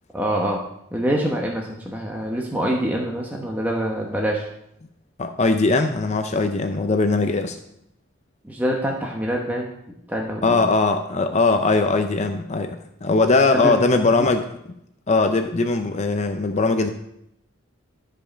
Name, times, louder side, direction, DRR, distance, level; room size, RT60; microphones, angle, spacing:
voice 1, 0.1-0.6 0.9-4.5 8.4-9.7 10.1-10.6 13.5-14.3, equal, 10° right, -1 dB, 0.9 m, -25 dB
voice 2, 5.2-7.6 10.4-14.5 15.1-16.9, left 3 dB, 35° left, 7 dB, 0.5 m, -20 dB
12.5 x 5.2 x 5.1 m, 0.78 s
head